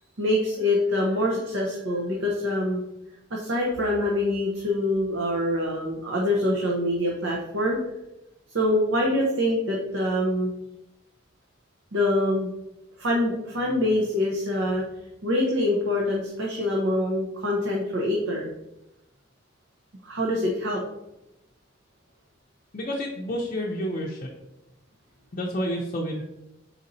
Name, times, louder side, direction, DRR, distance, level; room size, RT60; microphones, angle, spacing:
voice 1, 0.2-2.8 3.3-7.8 8.5-10.5 11.9-12.5 13.0-14.8 15.2-18.5 20.0-20.8, left 1 dB, 85° right, -2 dB, 0.8 m, -25 dB
voice 2, 22.7-24.3 25.3-26.2, equal, 45° left, -2 dB, 0.5 m, -30 dB
4.4 x 4.1 x 2.6 m, 0.91 s
head